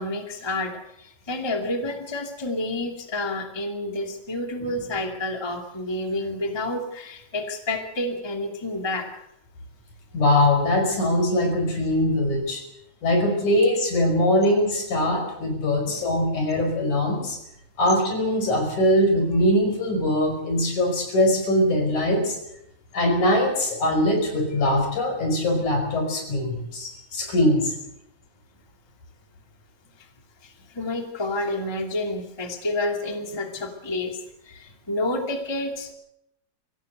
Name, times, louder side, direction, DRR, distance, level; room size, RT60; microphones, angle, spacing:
voice 1, 0.0-9.3 15.9-16.1 30.0-30.1 30.4-35.9, left 2 dB, 10° left, 4 dB, 2.2 m, -29 dB
voice 2, 10.1-12.6 13.0-17.4 17.8-22.4 22.9-27.7, left 1 dB, 85° left, 4 dB, 6.7 m, -22 dB
25.0 x 16.5 x 8.0 m, 0.80 s
omnidirectional pair, 3.3 m